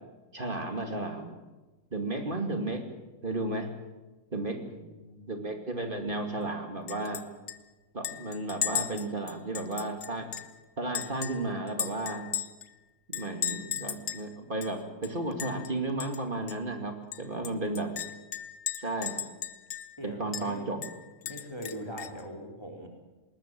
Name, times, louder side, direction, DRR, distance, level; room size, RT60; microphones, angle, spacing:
voice 1, 0.3-1.4 1.9-2.8 3.2-3.7 4.3-4.6 5.3-7.2 7.9-10.3 10.8-12.3 13.1-17.9 18.8-19.2 20.0-20.8, right 2 dB, 35° right, 4 dB, 2.6 m, -33 dB
voice 2, 4.6-5.2 20.0-20.7 21.2-22.9, equal, 15° left, 1 dB, 3.7 m, -41 dB
Chink clink, 6.9-7.2 7.5-7.6 8.0-10.5 10.9-12.7 13.1-14.3 14.6-14.7 15.0-15.7 16.0-16.2 16.5-16.6 17.1-20.0 20.3-20.5 20.8-22.2, left 8 dB, 55° left, 1.2 m, -36 dB
20.0 x 20.0 x 7.6 m, 1.2 s
omnidirectional pair, 1.5 m